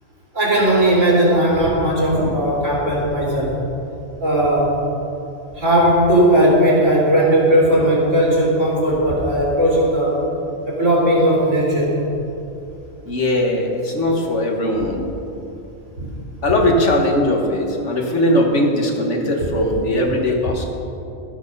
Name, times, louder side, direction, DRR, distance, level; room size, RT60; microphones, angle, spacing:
voice 1, 0.3-3.6 4.2-4.8 5.6-10.2 10.7-11.9 16.0-16.1 19.6-19.7, right 1 dB, 85° right, -4 dB, 3.6 m, -17 dB
voice 2, 13.1-15.0 16.4-20.6, left 1 dB, 70° left, 1 dB, 1.8 m, -19 dB
13.0 x 9.7 x 5.4 m, 2.8 s
omnidirectional pair, 1.3 m